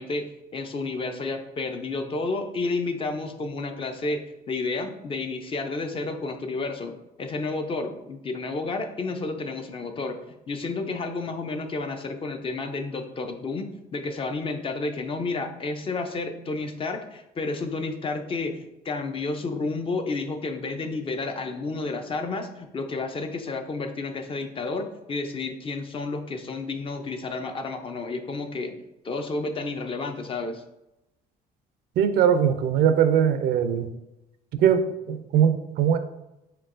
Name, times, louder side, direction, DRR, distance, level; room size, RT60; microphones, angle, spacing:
voice 1, 0.0-10.2 10.5-30.6, left 3 dB, 30° left, 6 dB, 0.5 m, -31 dB
voice 2, 32.0-33.9 34.6-36.0, right 8 dB, 70° right, 10 dB, 0.4 m, -21 dB
4.4 x 3.7 x 2.5 m, 0.90 s
cardioid pair, 110°, 17 cm